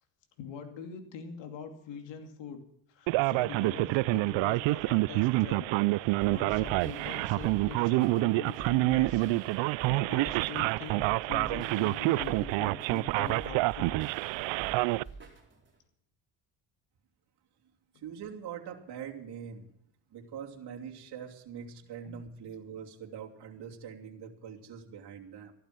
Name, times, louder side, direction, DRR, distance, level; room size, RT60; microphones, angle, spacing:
voice 1, 0.4-2.6 2.9-5.7 6.0-14.0 15.0-15.2 22.0-22.1, left 7 dB, 75° left, 5 dB, 2.7 m, -43 dB
Male speech man speaking, 3.1-15.0, right 22 dB, 80° right, 0.5 m, -27 dB
sound 1, 6.2-15.8, right 4 dB, 25° right, 4.6 m, -48 dB
voice 2, 17.9-19.7 20.1-25.5, right 7 dB, 60° right, 0 dB, 3.1 m, -43 dB
15.0 x 12.5 x 6.0 m, 0.71 s
cardioid pair, 115°, 45 cm